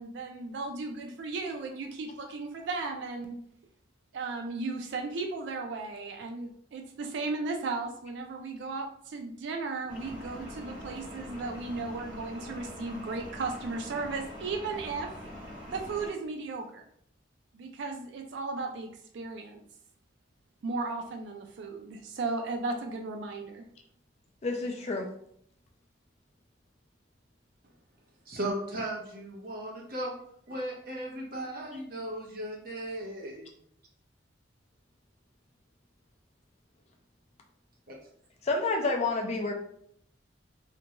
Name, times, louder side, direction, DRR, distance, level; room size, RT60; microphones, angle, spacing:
voice 1, 0.0-3.4 4.1-15.1 15.7-16.8 17.5-18.9 19.1-19.6 20.6-23.7, right 3 dB, 65° right, 4 dB, 0.3 m, -35 dB
sound 1, 9.9-16.1, equal, 30° right, 1.2 m, -44 dB
voice 2, 24.4-25.1 38.4-39.5, left 3 dB, 35° left, 3 dB, 0.4 m, -29 dB
voice 3, 28.3-30.1 30.5-33.5 37.9-38.0, right 1 dB, 50° right, -1 dB, 0.8 m, -36 dB
2.6 x 2.2 x 2.8 m, 0.67 s
head